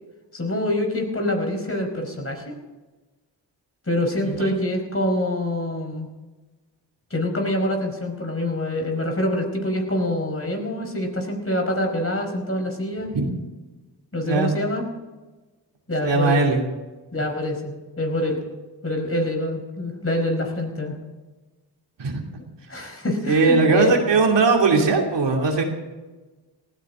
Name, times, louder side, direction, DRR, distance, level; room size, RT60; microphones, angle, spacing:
voice 1, 0.3-2.6 3.9-6.1 7.1-13.1 14.1-14.9 15.9-16.4 17.1-18.4 18.8-21.0 22.7-23.9, left 1 dB, 30° left, 3 dB, 4.9 m, -25 dB
voice 2, 16.0-16.6 22.0-22.2 23.3-25.6, right 4 dB, 70° right, 1 dB, 2.9 m, -19 dB
18.5 x 14.5 x 3.9 m, 1.2 s
supercardioid pair, 45°, 45 cm